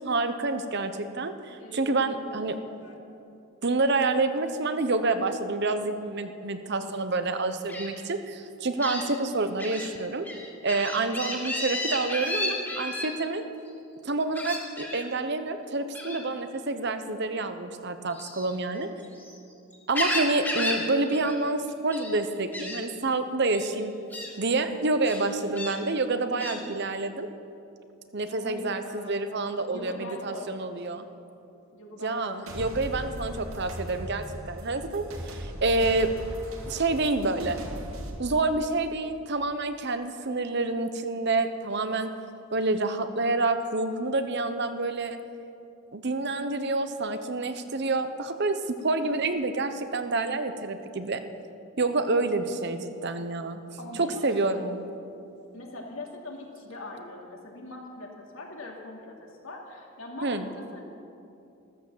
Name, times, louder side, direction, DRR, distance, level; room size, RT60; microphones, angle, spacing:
voice 1, 0.0-2.5 3.6-10.3 10.6-13.4 14.0-18.9 19.9-23.9 24.4-27.3 28.1-31.0 32.0-36.1 36.7-37.6 38.2-42.1 42.5-45.2 45.9-51.2 51.8-53.6 54.0-54.8 60.2-60.5, right 3 dB, 55° right, 9 dB, 0.9 m, -28 dB
voice 2, 1.6-3.0 28.2-29.2 29.7-30.7 31.0-31.3 31.7-32.5 32.8-33.1 53.8-54.7 55.5-59.2 59.4-60.9, left 2 dB, 75° left, -1 dB, 2.8 m, -42 dB
Gull seagull, 7.7-7.9 8.8-9.0 9.6-9.9 10.2-13.1 14.3-15.0 15.9-16.2 18.1-19.3 19.7-20.8 21.1-21.4 21.7-22.2 22.5-22.8 23.5-23.7 24.1-24.3 25.0-25.7 26.4-26.6, left 1 dB, 10° left, 2.3 m, -32 dB
sound 1, 32.5-38.1, equal, 80° right, 2.4 m, -38 dB
14.0 x 14.0 x 7.4 m, 2.6 s
head